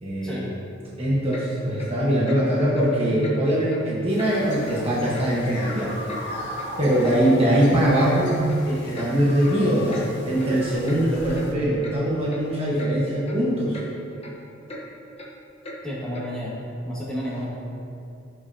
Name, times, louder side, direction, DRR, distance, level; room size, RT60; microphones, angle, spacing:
voice 1, 0.0-0.5 1.0-6.0 6.8-8.4 8.6-13.8, equal, 30° right, -6 dB, 1.4 m, -22 dB
Clock, 1.3-1.5 1.8-1.9 2.3-2.4 2.7-2.9 3.2-3.4 3.7-3.8 4.2-4.3 4.7-4.8 5.1-5.3 5.6-6.2 6.6-6.7 7.0-7.2 7.5-7.7 8.0-8.1 8.5-8.6 8.9-9.1 9.4-9.6 9.9-10.1 10.4-10.5 10.8-11.0 11.3-11.5 11.8-12.0 12.3-12.5 12.8-12.9 13.3-13.4 13.7-13.9 14.2-14.3 14.7-14.8 15.2-15.3 15.6-15.8 16.1-16.3, left 1 dB, 30° left, 1.1 m, -38 dB
sound 1, 4.1-11.5, left 1 dB, 60° left, 1.7 m, -38 dB
voice 2, 15.8-16.5 16.8-17.5, equal, 5° left, -8 dB, 2.1 m, -31 dB
16.0 x 5.4 x 2.9 m, 2.6 s
head